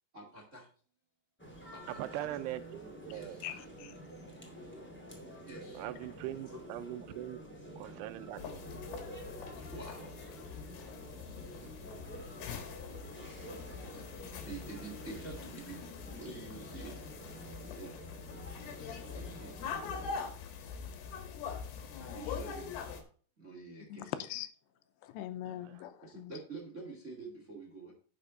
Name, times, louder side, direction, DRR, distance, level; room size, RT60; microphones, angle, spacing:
voice 1, 0.1-0.6 1.7-2.2 3.1-3.6 5.5-5.8 9.6-10.2 10.9-11.7 12.8-12.9 14.2-15.9 16.2-16.9 17.8-17.9 19.1-19.6 22.0-23.1 23.4-24.1 26.0-27.9, right 3 dB, 45° right, 0.9 m, -48 dB
sound 1, 1.4-20.1, equal, 20° left, 0.3 m, -49 dB
voice 2, 1.9-3.4 5.7-7.4 7.8-8.4 8.7-8.8 11.6-11.7 25.4-25.8, right 14 dB, 85° right, 2.6 m, -41 dB
voice 3, 3.4-4.0 23.9-24.5 25.0-26.3, left 12 dB, 90° left, 2.9 m, -41 dB
sound 2, 8.4-23.0, left 6 dB, 75° left, 3.4 m, -44 dB
10.0 x 6.7 x 3.9 m
omnidirectional pair, 5.0 m